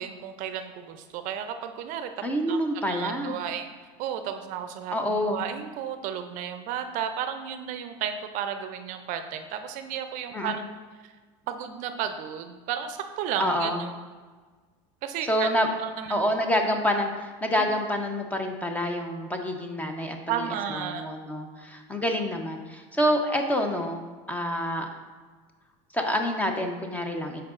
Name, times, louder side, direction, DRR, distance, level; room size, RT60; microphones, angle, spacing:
voice 1, 0.0-2.1 2.5-2.6 2.8-3.7 4.0-10.6 11.0-11.1 11.5-13.9 15.0-15.5 15.8-16.2 17.6-17.7 20.3-21.1, right 9 dB, 55° right, 8 dB, 0.5 m, -33 dB
voice 2, 2.2-3.4 4.9-5.4 10.3-10.6 13.4-13.8 15.2-15.7 16.1-24.0 24.3-24.9 25.9-27.4, equal, 10° left, 4 dB, 0.7 m, -27 dB
11.0 x 4.6 x 2.5 m, 1.4 s
supercardioid pair, 125°, 16 cm